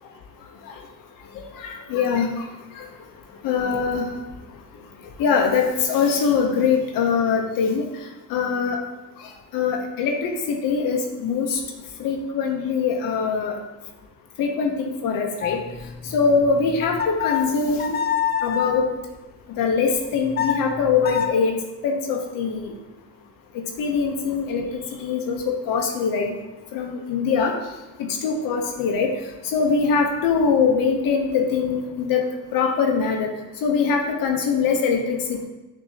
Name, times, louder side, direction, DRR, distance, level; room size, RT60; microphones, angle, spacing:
voice 1, 1.6-2.4 2.8-2.9 3.4-4.1 5.2-7.8 8.3-8.8 9.5-11.6 12.0-13.5 14.4-15.6 16.1-18.0 18.4-18.9 19.6-21.5 21.8-22.7 23.8-24.6 25.0-26.3 26.7-27.5 28.2-29.1 29.4-32.2 32.5-33.3 33.6-35.4, left 5 dB, 90° left, 2 dB, 0.6 m, -22 dB
sound 1, 15.4-18.8 20.0-21.3, left 8 dB, 30° left, 0.4 m, -27 dB
6.2 x 2.7 x 2.6 m, 1.1 s
cardioid pair, 80°, 33 cm